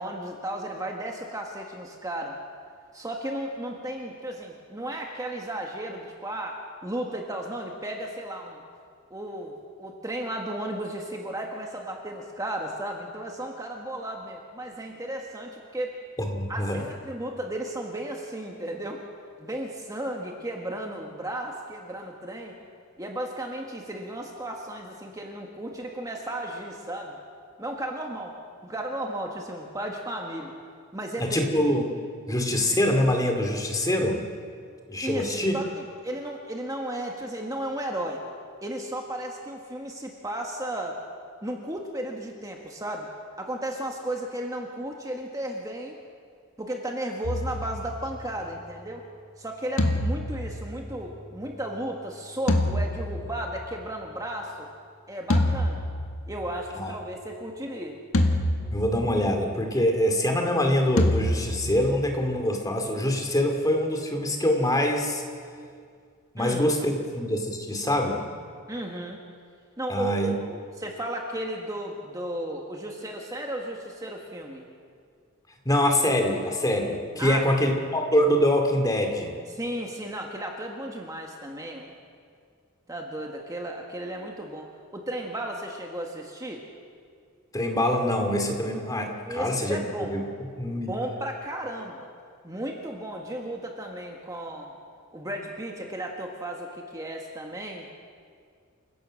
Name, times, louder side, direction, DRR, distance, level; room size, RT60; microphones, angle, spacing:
voice 1, 0.0-2.4 2.9-8.6 9.1-16.0 16.5-19.0 19.4-22.5 23.0-27.2 27.6-28.3 28.6-30.5 30.9-31.4 32.3-32.5 35.0-38.2 38.6-41.0 41.4-43.1 43.4-46.0 46.6-49.0 49.4-54.7 55.1-55.8 56.3-58.0 66.4-66.6 68.7-69.2 69.8-74.7 77.2-77.4 79.5-81.9 82.9-86.6 89.3-90.2 90.9-92.1 92.4-94.7 95.1-97.9, right 1 dB, 15° right, 1 dB, 1.6 m, -34 dB
voice 2, 16.2-16.8 31.2-31.9 32.3-34.2 34.9-35.5 56.8-56.9 58.7-65.2 66.3-68.2 69.9-70.3 75.7-79.4 87.5-89.8 90.1-90.2 90.6-90.9, left 1 dB, 15° left, 3 dB, 2.3 m, -24 dB
sound 1, 47.2-48.5 49.8-51.5 52.5-53.8 55.3-56.7 58.1-59.3 61.0-62.4, left 1 dB, 75° left, 1.8 m, -27 dB
28.5 x 16.5 x 6.3 m, 2.2 s
head